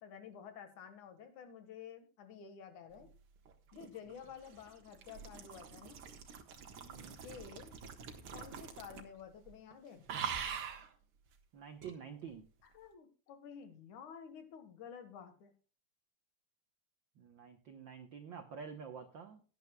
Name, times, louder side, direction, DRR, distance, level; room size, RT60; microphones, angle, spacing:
voice 1, 0.0-3.1 3.7-6.0 7.2-7.8 8.3-10.0 12.7-15.5, left 7 dB, 75° left, 8 dB, 3.0 m, -51 dB
sound 1, 3.5-9.2 9.5-9.7 10.1-10.9 11.8-12.0, right 7 dB, 50° right, 1.9 m, -44 dB
voice 2, 6.9-7.2 11.5-12.4 17.2-19.4, right 6 dB, 90° right, 7 dB, 1.0 m, -49 dB
17.5 x 10.5 x 2.3 m, 0.36 s
omnidirectional pair, 3.6 m